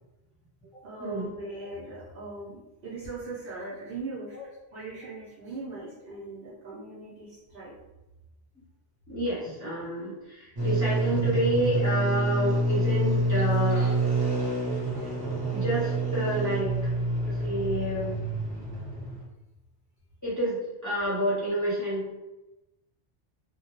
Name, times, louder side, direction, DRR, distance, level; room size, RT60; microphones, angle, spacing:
voice 1, 0.7-4.4 4.7-7.7, right 3 dB, 65° right, -9 dB, 0.9 m, -40 dB
voice 2, 9.1-13.9 15.5-16.7 17.3-18.1 20.2-22.1, equal, 20° left, -9 dB, 0.7 m, -29 dB
sound 1, 10.6-19.2, right 2 dB, 25° right, 0.6 m, -27 dB
2.2 x 2.1 x 2.9 m, 0.98 s
omnidirectional pair, 1.1 m